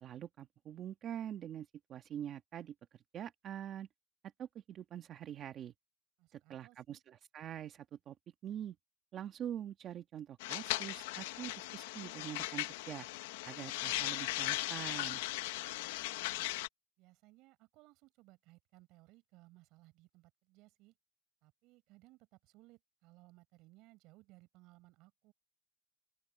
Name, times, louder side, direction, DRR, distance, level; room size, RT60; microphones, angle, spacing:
voice 1, 0.0-3.9 4.4-5.7 6.3-8.1 8.4-8.7 9.1-13.1 13.4-15.2, right 10 dB, 35° right, 1.5 m, -45 dB
voice 2, 6.2-7.0 15.7-16.5 17.0-21.0 21.4-25.3, right 20 dB, 55° right, 5.5 m, -63 dB
sound 1, 10.4-16.7, left 18 dB, 85° left, 0.9 m, -38 dB
open air
supercardioid pair, 150°, 0 cm